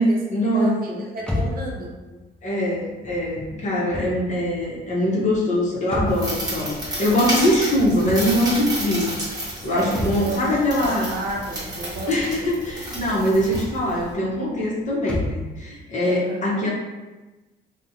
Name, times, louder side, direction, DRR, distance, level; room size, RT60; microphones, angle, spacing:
voice 1, 0.0-1.0 2.4-9.1 9.6-11.2 12.1-16.7, left 1 dB, 40° left, -4 dB, 0.7 m, -22 dB
voice 2, 0.5-1.9 9.6-12.6 16.0-16.4, right 2 dB, 55° right, -2 dB, 0.6 m, -32 dB
sound 1, 1.2-15.5, left 1 dB, 5° left, 0.4 m, -34 dB
sound 2, 6.1-14.1, right 1 dB, 20° right, 0.9 m, -31 dB
2.4 x 2.1 x 2.7 m, 1.2 s
cardioid pair, 105°, 18 cm